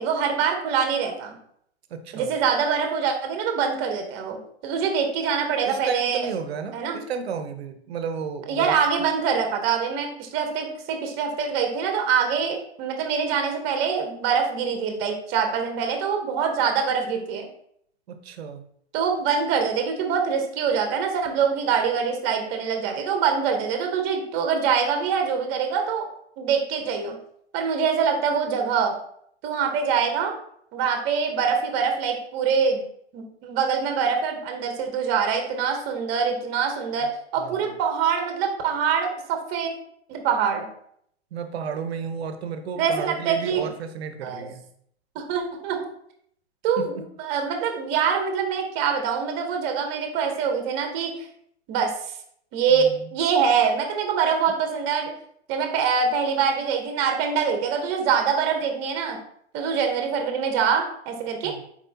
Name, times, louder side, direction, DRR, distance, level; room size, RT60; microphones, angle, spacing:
voice 1, 0.0-1.4 2.1-6.3 6.7-7.0 8.5-17.5 18.9-26.1 26.4-27.2 27.5-28.9 29.4-30.3 30.7-32.8 33.1-37.1 37.3-39.7 40.1-40.7 42.8-43.7 44.2-44.5 45.1-45.8 46.6-51.3 51.7-51.9 52.5-55.1 55.5-59.2 59.5-61.5, right 6 dB, 30° right, 4 dB, 0.9 m, -24 dB
voice 2, 1.9-2.3 5.6-8.8 18.1-18.6 37.4-37.7 41.3-44.6 46.8-47.0 52.7-53.1 61.4-61.6, right 6 dB, 65° right, 8 dB, 0.7 m, -33 dB
4.3 x 4.2 x 2.8 m, 0.68 s
hypercardioid pair, 125°, 33 cm